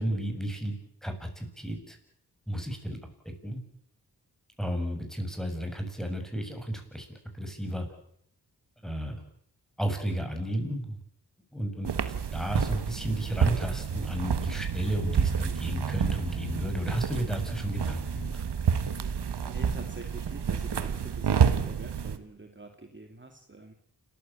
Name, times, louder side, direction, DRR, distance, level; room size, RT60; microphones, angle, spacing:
voice 1, 0.0-2.0 2.5-3.0 3.2-3.6 4.6-7.1 7.3-7.9 8.8-9.2 9.8-11.0 11.5-11.9 12.3-18.4, right 1 dB, ahead, 5 dB, 7.0 m, -33 dB
sound 1, 11.8-22.2, right 7 dB, 85° right, 1.6 m, -29 dB
voice 2, 19.5-23.7, right 2 dB, 30° right, 5 dB, 2.4 m, -46 dB
29.0 x 14.5 x 8.7 m, 0.73 s
cardioid pair, 50°, 40 cm